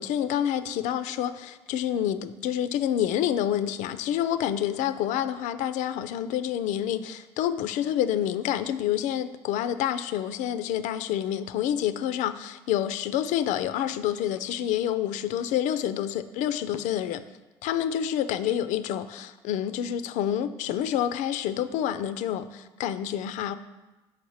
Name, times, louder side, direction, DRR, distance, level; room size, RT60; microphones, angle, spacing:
voice 1, 0.0-17.2 17.6-23.5, left 10 dB, 75° left, 0.4 m, -28 dB
5.8 x 4.8 x 4.7 m
hypercardioid pair, 60°, 13 cm